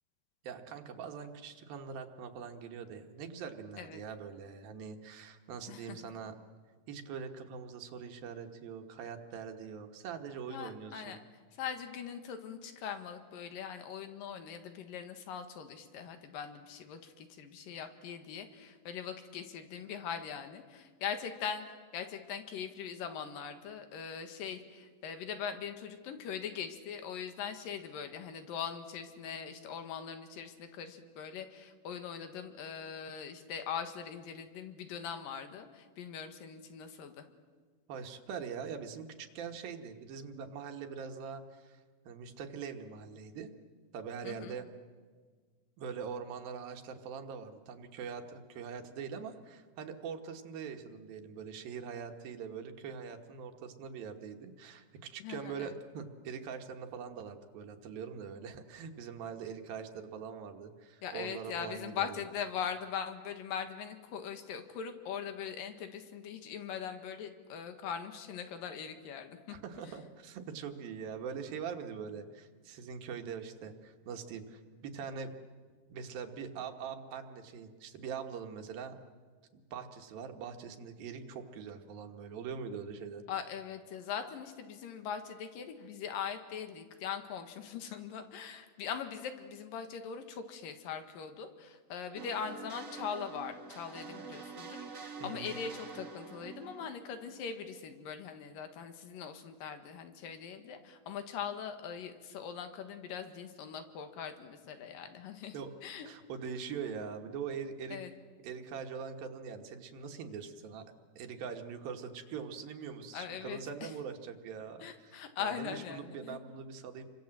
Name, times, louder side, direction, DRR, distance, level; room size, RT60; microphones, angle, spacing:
voice 1, 0.4-6.4 6.9-11.2 37.9-41.8 42.1-43.5 43.9-44.7 45.8-62.2 69.5-75.4 75.9-79.0 79.5-83.2 95.2-95.5 105.5-105.7 106.1-108.0 108.4-110.8 111.2-117.1, right 6 dB, 80° right, 5 dB, 3.2 m, -43 dB
voice 2, 10.5-11.2 11.6-21.6 21.9-37.2 44.2-44.6 55.2-55.7 61.0-69.6 83.3-105.6 105.8-106.1 107.9-108.1 113.1-113.9 114.8-116.4, left 7 dB, 70° left, 8 dB, 3.3 m, -41 dB
sound 1, 92.1-97.9, right 4 dB, 45° right, 1.0 m, -47 dB
30.0 x 24.0 x 7.7 m, 1.5 s
omnidirectional pair, 4.2 m